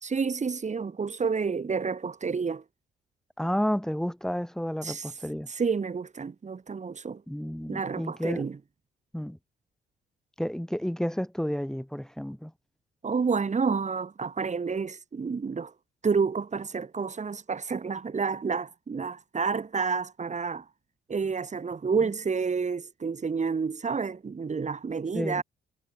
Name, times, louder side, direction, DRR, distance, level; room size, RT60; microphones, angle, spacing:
voice 1, 0.0-2.6 4.8-5.1 5.5-7.2 7.7-8.6 13.0-15.7 16.0-20.6 21.1-25.4, right 5 dB, 35° right, 6.4 m, -29 dB
voice 2, 3.4-5.5 7.3-8.4 9.1-9.4 10.4-12.5 25.1-25.4, equal, 5° left, 6.8 m, -31 dB
cardioid pair, 90°, 20 cm